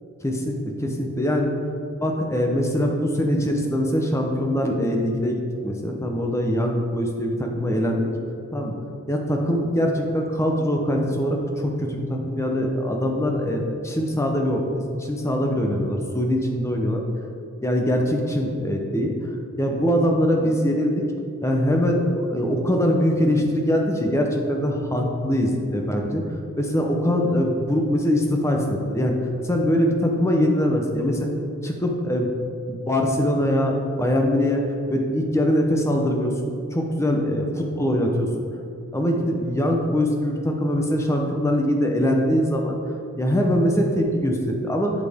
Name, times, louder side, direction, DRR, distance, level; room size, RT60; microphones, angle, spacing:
voice 1, 0.2-1.5 2.0-8.1 8.5-8.7 9.1-17.0 17.6-19.1 19.6-21.0 21.4-26.2 26.6-29.2 29.4-31.2 31.6-32.3 32.7-34.6 34.9-38.3 38.9-42.8 43.2-44.9, equal, 15° left, 2 dB, 0.8 m, -22 dB
8.1 x 7.4 x 3.6 m, 2.5 s
head